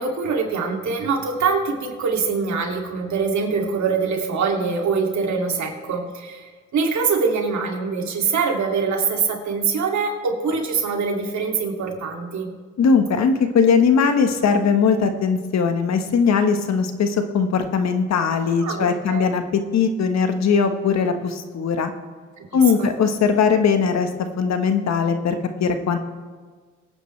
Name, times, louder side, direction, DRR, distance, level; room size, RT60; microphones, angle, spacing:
voice 1, 0.0-12.5 18.6-19.4 22.4-22.9, right 5 dB, 70° right, 1 dB, 2.5 m, -24 dB
voice 2, 12.8-19.4 19.7-21.9 22.5-24.1 24.4-26.0, left 5 dB, 65° left, 7 dB, 1.3 m, -19 dB
23.0 x 9.2 x 3.3 m, 1.5 s
cardioid pair, 75°, 30 cm